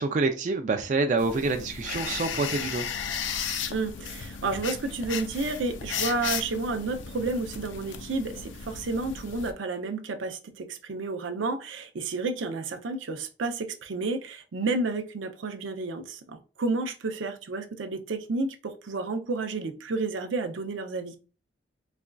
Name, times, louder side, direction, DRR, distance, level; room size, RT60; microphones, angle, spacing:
voice 1, 0.0-2.9, right 3 dB, 40° right, 0.3 m, -27 dB
sound 1, 1.2-9.5, left 7 dB, 85° left, 0.4 m, -35 dB
voice 2, 3.7-21.1, right 3 dB, 90° right, 0.5 m, -31 dB
4.1 x 2.4 x 2.2 m
head